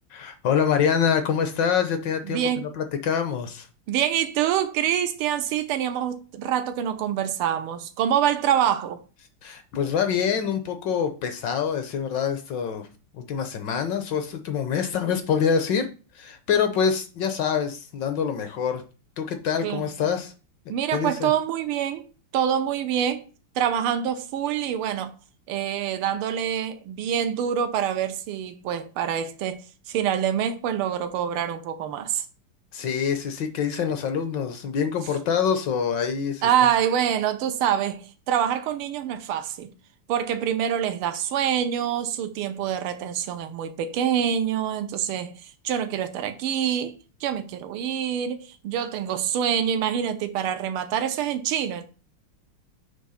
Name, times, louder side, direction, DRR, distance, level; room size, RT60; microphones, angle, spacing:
voice 1, 0.1-3.7 9.4-12.9 13.1-15.9 16.1-18.8 19.2-20.3 20.9-21.3 32.7-36.5, left 7 dB, 65° left, 1.3 m, -25 dB
voice 2, 2.3-2.7 3.9-9.0 19.6-20.1 20.7-22.0 22.3-23.2 23.5-25.1 25.5-32.2 36.4-39.7 40.1-45.3 45.6-46.9 47.2-51.8, right 9 dB, 85° right, 1.7 m, -26 dB
7.4 x 3.4 x 5.6 m
omnidirectional pair, 2.3 m